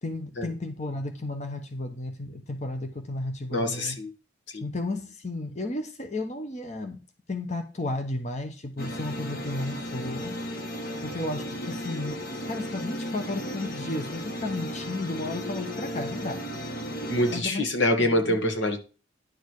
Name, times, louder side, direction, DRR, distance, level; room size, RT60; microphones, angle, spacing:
voice 1, 0.0-4.0 4.6-7.0 7.3-10.3 11.0-12.2 12.5-16.4 17.3-17.7 18.0-18.4, left 2 dB, 40° left, 5 dB, 1.2 m, -33 dB
voice 2, 3.5-4.1 4.5-4.6 17.1-18.8, left 1 dB, 85° left, 5 dB, 2.0 m, -25 dB
sound 1, 8.8-17.4, equal, 55° left, 2.0 m, -35 dB
11.0 x 6.5 x 4.9 m, 0.33 s
head